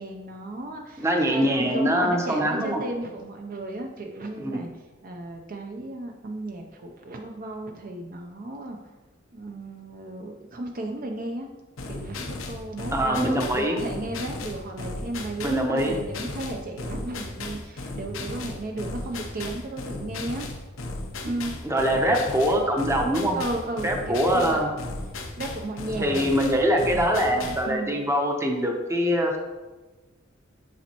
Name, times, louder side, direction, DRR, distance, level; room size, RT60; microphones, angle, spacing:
voice 1, 0.0-4.7 5.0-8.8 9.3-11.5 11.9-20.5 21.2-21.5 23.3-24.6 25.4-26.4 26.7-27.9, right 2 dB, 45° right, 3 dB, 0.5 m, -34 dB
voice 2, 1.0-2.8 4.4-4.6 12.9-13.8 15.4-16.0 21.6-23.4 23.8-24.7 26.0-29.4, equal, 15° right, 1 dB, 0.7 m, -23 dB
sound 1, 11.8-27.7, left 2 dB, 80° left, 0.7 m, -36 dB
7.4 x 5.1 x 2.9 m, 1.2 s
head